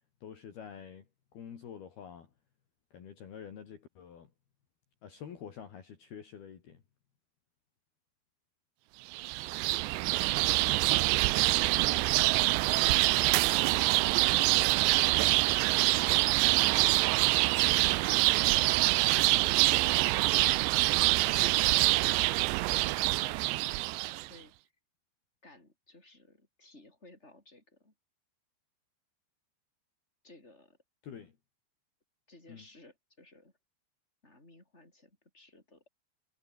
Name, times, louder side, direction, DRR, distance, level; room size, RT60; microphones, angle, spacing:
voice 1, 0.2-1.1 1.3-2.3 2.9-4.3 5.0-6.8 31.0-31.3 32.5-32.7, left 8 dB, 55° left, 4.8 m, -47 dB
sound 1, 9.1-24.3, right 21 dB, 80° right, 2.6 m, -25 dB
voice 2, 10.3-11.2 11.6-12.3 12.7-13.6 15.1-17.2 17.6-20.4 20.7-24.5 25.4-27.9 30.2-30.8 32.3-33.5 34.2-35.9, left 2 dB, 15° left, 8.0 m, -55 dB
omnidirectional pair, 5.6 m